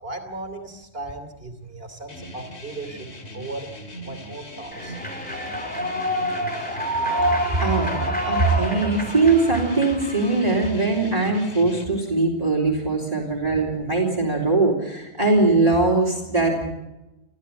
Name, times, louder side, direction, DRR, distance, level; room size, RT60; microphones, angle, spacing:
voice 1, 0.0-3.1 3.3-3.7 4.0-5.0, right 2 dB, 60° right, 6 dB, 3.3 m, -36 dB
sound 1, 2.1-11.8, equal, 70° left, 2.8 m, -39 dB
Human voice / Clapping / Cheering, 4.7-10.7, equal, 10° left, 3.4 m, -27 dB
voice 2, 7.6-8.0 8.3-16.7, right 3 dB, 35° right, 1 dB, 3.7 m, -21 dB
29.5 x 14.0 x 8.3 m, 0.99 s
omnidirectional pair, 1.2 m